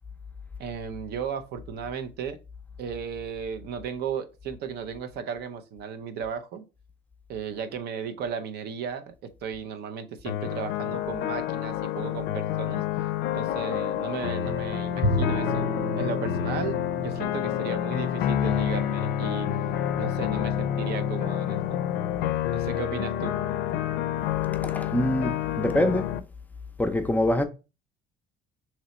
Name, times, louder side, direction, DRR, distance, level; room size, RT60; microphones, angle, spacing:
voice 1, 0.6-2.4 2.8-6.7 7.3-9.1 9.4-12.8 13.3-15.7 16.0-19.5 20.0-21.8 22.5-23.3, right 7 dB, 70° right, 0.6 m, -35 dB
sound 1, 10.3-26.2, left 11 dB, 75° left, 0.4 m, -28 dB
Bowed string instrument, 15.0-19.3, left 1 dB, 35° right, 1.0 m, -32 dB
voice 2, 24.6-26.1 26.8-27.4, left 1 dB, 10° left, 0.5 m, -25 dB
3.0 x 2.9 x 4.1 m
cardioid pair, 110°, 17 cm